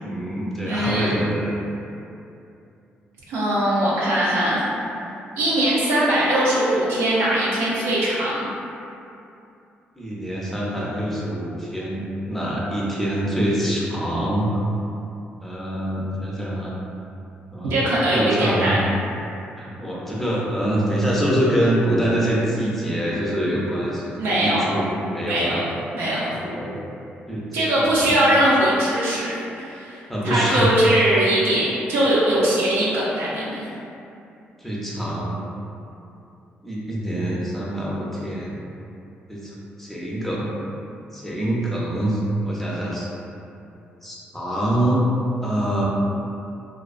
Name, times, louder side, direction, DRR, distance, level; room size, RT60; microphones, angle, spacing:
voice 1, 0.0-1.5 10.0-14.5 15.4-16.8 17.5-17.7 18.1-18.7 19.6-25.6 26.3-26.8 27.3-28.1 30.1-30.7 34.6-35.4 36.6-38.6 39.3-40.5 41.1-43.1 44.0-45.0 45.4-45.9, right 1 dB, 5° left, -6 dB, 0.5 m, -25 dB
voice 2, 0.7-1.2 3.3-4.6 5.4-8.5 17.7-18.9 24.2-24.7 25.2-25.6 25.9-26.3 27.5-33.7, right 1 dB, 90° right, -7 dB, 0.6 m, -21 dB
2.3 x 2.2 x 2.4 m, 2.7 s
cardioid pair, 90°, 4 cm